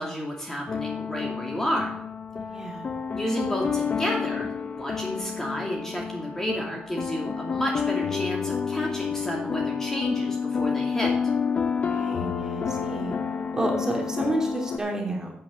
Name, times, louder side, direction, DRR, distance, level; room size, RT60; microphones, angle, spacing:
voice 1, 0.0-2.0 3.1-11.3, equal, 15° left, -1 dB, 2.5 m, -31 dB
sound 1, 0.7-14.8, left 6 dB, 45° left, 0.8 m, -29 dB
voice 2, 2.3-2.9 11.8-13.2 13.5-15.3, right 1 dB, 20° right, -1 dB, 3.1 m, -30 dB
8.8 x 8.7 x 5.2 m, 0.71 s
cardioid pair, 110°, 3 cm